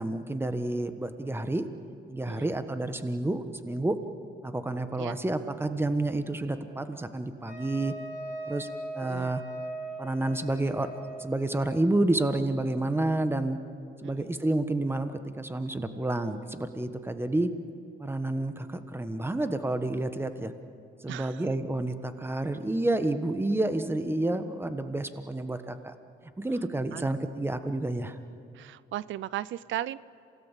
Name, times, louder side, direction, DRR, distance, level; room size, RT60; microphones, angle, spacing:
voice 1, 0.0-1.6 2.1-4.0 4.4-7.9 8.5-8.7 8.9-9.4 10.0-10.9 11.2-13.6 14.0-17.5 18.0-20.5 21.0-25.9 26.4-28.2, right 2 dB, 10° right, 9 dB, 1.4 m, -29 dB
Wind instrument woodwind instrument, 7.5-11.3, right 2 dB, 40° right, 6.6 m, -39 dB
voice 2, 9.0-9.3 14.0-14.3 21.1-21.4 26.9-27.0 28.6-30.0, right 14 dB, 75° right, 19 dB, 0.5 m, -36 dB
27.5 x 18.0 x 7.5 m, 2.7 s
cardioid pair, 90°, 20 cm